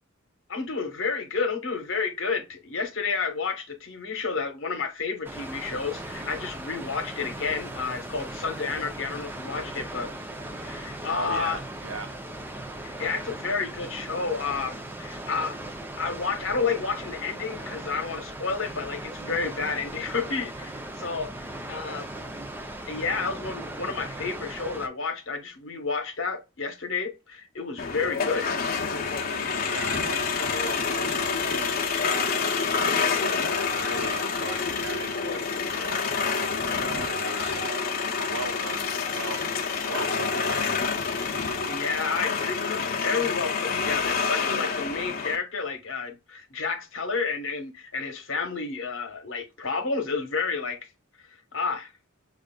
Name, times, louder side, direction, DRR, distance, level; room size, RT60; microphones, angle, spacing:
voice 1, 0.5-10.1 10.6-11.6 12.8-15.6 16.0-21.3 21.7-22.1 22.9-28.5 41.7-50.8 51.2-51.9, left 4 dB, 65° left, 1.0 m, -30 dB
Water, 5.2-24.9, right 1 dB, 10° right, 0.4 m, -38 dB
voice 2, 11.1-12.2 22.3-22.4 29.7-40.9, right 4 dB, 75° right, 0.8 m, -39 dB
sound 1, 27.8-45.4, left 5 dB, 45° left, 0.7 m, -28 dB
6.3 x 2.4 x 2.2 m
head